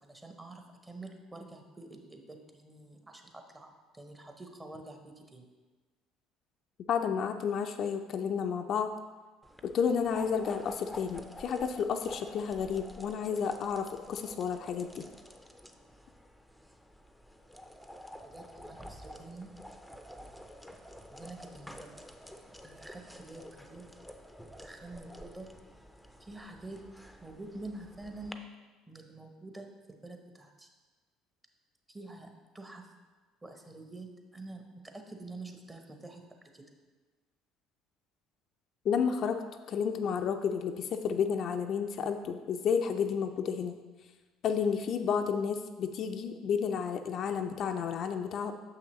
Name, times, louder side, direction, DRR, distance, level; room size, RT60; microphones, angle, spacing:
voice 1, 0.0-5.5 18.2-19.5 21.1-22.1 22.6-23.9 24.6-25.5 26.2-26.8 27.2-28.4 28.9-30.7 31.9-32.9 33.4-34.6 34.9-36.2 36.5-36.6, right 2 dB, 20° right, 4 dB, 0.9 m, -47 dB
voice 2, 6.9-8.9 9.6-15.0 38.9-39.4 39.7-43.7 44.4-48.5, left 7 dB, 50° left, 6 dB, 0.4 m, -31 dB
sound 1, 9.4-28.3, equal, ahead, 0.5 m, -50 dB
6.7 x 5.7 x 3.0 m, 1.3 s
hypercardioid pair, 60°, 0 cm